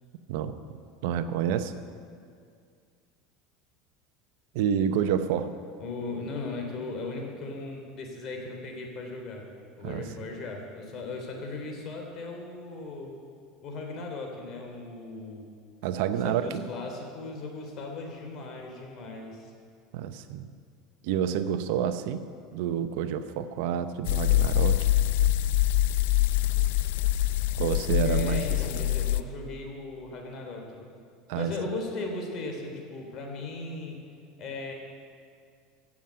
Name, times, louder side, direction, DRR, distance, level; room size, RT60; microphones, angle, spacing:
voice 1, 1.0-1.7 4.5-5.6 9.8-10.0 15.8-16.7 19.9-20.5 21.0-22.2 22.5-24.9 27.6-28.4 28.7-28.8 31.3-31.5, right 9 dB, 70° right, 10 dB, 0.8 m, -28 dB
voice 2, 5.8-9.5 9.8-13.1 13.6-15.5 16.2-19.5 28.0-30.8 31.3-34.0 34.4-34.7, left 3 dB, 45° left, 2 dB, 3.4 m, -37 dB
sound 1, 24.0-29.2, left 13 dB, 75° left, 0.5 m, -24 dB
15.5 x 7.2 x 8.9 m, 2.2 s
supercardioid pair, 105°, 0 cm